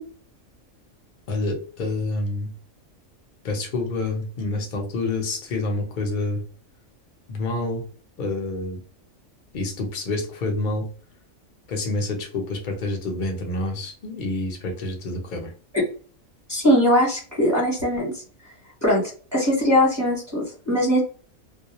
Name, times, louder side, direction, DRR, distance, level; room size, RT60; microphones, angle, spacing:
voice 1, 1.3-2.5 3.4-6.4 7.3-7.8 8.2-8.8 9.5-10.9 11.7-15.5, left 2 dB, 45° left, 2 dB, 0.7 m, -28 dB
voice 2, 16.5-18.1 18.8-19.0 19.3-21.0, equal, 20° right, -7 dB, 0.9 m, -20 dB
2.3 x 2.0 x 2.9 m, 0.41 s
omnidirectional pair, 1.4 m